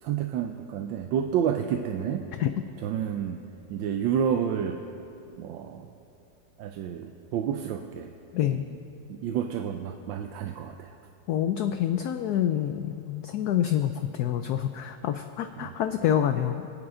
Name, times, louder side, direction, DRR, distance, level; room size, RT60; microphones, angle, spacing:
voice 1, 0.0-2.3 2.8-3.4 3.7-4.8 5.4-5.9 6.6-8.1 8.5-8.6 9.1-11.0 15.6-15.7, right 8 dB, 90° right, 5 dB, 1.3 m, -29 dB
voice 2, 8.3-8.7 11.3-16.7, left 10 dB, 70° left, 7 dB, 1.0 m, -27 dB
24.0 x 9.6 x 3.8 m, 2.8 s
omnidirectional pair, 2.0 m